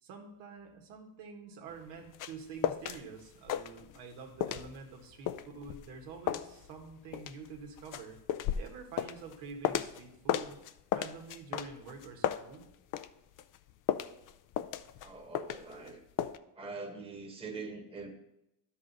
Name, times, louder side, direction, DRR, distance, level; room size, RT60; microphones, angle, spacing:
voice 1, 0.0-8.2 8.5-10.6 10.9-12.7, right 4 dB, 85° right, 2 dB, 1.7 m, -47 dB
sound 1, 1.7-3.0 3.3-4.1 4.4-10.0 10.3-13.1 13.4-15.9 16.2-16.4, left 11 dB, 50° left, 0.5 m, -34 dB
voice 2, 15.0-16.0 16.6-18.1, right 3 dB, 15° right, 2 dB, 1.3 m, -43 dB
12.0 x 5.4 x 4.1 m, 0.86 s
cardioid pair, 120°, 41 cm